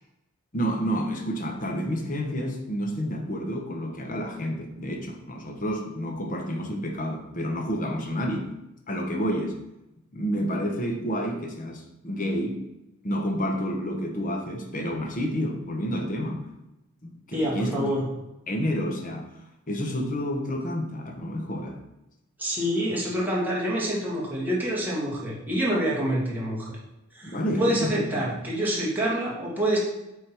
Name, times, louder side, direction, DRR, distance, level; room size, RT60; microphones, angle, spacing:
voice 1, 0.5-8.5 8.9-9.5 10.1-12.6 13.0-16.5 17.0-18.1 18.5-19.3 19.7-21.8 27.2-28.3, equal, 40° left, 3 dB, 1.1 m, -29 dB
voice 2, 17.3-18.0 22.4-26.8 27.1-29.8, equal, 10° right, -5 dB, 1.9 m, -27 dB
8.0 x 3.8 x 4.5 m, 0.93 s
head